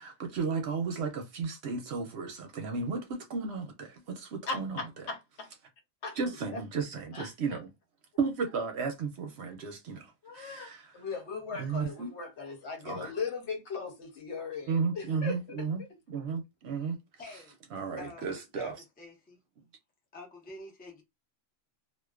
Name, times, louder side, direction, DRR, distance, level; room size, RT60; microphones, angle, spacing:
voice 1, 0.0-4.8 6.2-7.7 8.2-10.9 11.6-12.1 12.8-13.1 14.7-17.0 17.7-18.7, right 5 dB, 65° right, 0.8 m, -34 dB
voice 2, 4.4-5.5 6.0-6.2 6.5-6.6 7.1-7.3 10.2-15.9, left 4 dB, 65° left, 1.0 m, -38 dB
voice 3, 17.2-17.6 18.0-19.4 20.1-21.0, left 2 dB, 15° left, 0.4 m, -48 dB
2.4 x 2.2 x 2.3 m
omnidirectional pair, 1.3 m